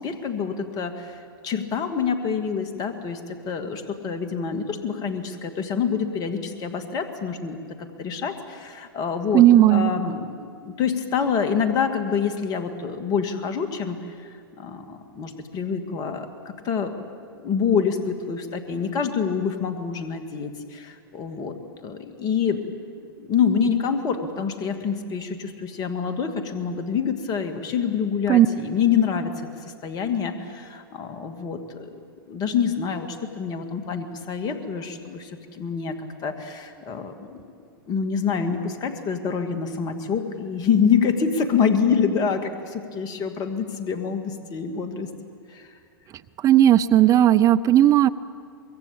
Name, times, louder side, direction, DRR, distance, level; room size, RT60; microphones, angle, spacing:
voice 1, 0.0-7.6 8.0-9.4 9.7-14.3 14.6-16.3 16.6-16.9 17.4-21.6 21.8-22.7 23.2-29.5 29.8-31.9 32.3-35.9 36.2-37.5 37.9-45.1 45.5-45.7, left 6 dB, 30° left, 7 dB, 2.3 m, -26 dB
voice 2, 9.3-9.9 28.3-28.5 46.4-48.1, right 12 dB, 25° right, 16 dB, 0.6 m, -15 dB
24.0 x 22.5 x 8.7 m, 2.3 s
hypercardioid pair, 110°, 12 cm